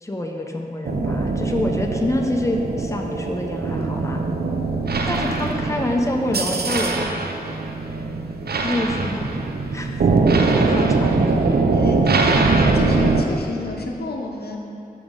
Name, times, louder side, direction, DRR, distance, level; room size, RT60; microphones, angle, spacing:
voice 1, 0.0-4.2 5.1-7.1 8.6-9.3 9.7-10.0 10.3-11.4, left 1 dB, 20° left, 1 dB, 0.7 m, -26 dB
sound 1, 0.9-13.2, right 3 dB, 90° right, 0.5 m, -21 dB
voice 2, 11.7-12.4 12.7-14.6, left 2 dB, 90° left, 1 dB, 0.6 m, -30 dB
6.9 x 6.1 x 3.8 m, 2.7 s
wide cardioid pair, 55°, 16 cm